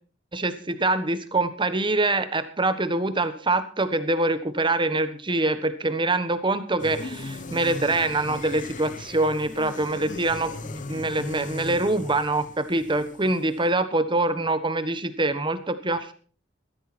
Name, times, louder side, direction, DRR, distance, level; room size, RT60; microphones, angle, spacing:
voice 1, 0.3-16.1, right 2 dB, 25° right, 11 dB, 1.3 m, -25 dB
sound 1, 6.8-13.7, left 3 dB, 45° left, 0.9 m, -38 dB
15.5 x 13.0 x 4.3 m, 0.41 s
head